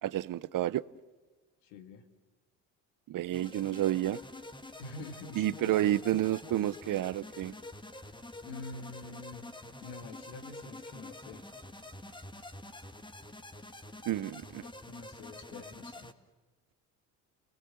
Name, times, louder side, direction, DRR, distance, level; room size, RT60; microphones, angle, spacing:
voice 1, 0.0-0.8 3.1-4.2 5.4-7.5 14.1-14.6, right 13 dB, 50° right, 0.8 m, -30 dB
voice 2, 1.6-2.1 4.8-6.1 8.4-9.4 9.8-11.4 12.4-12.5 14.6-16.1, left 4 dB, 80° left, 2.2 m, -46 dB
sound 1, 3.3-16.1, left 1 dB, 10° left, 1.8 m, -47 dB
29.0 x 19.5 x 7.7 m
hypercardioid pair, 55°, 41 cm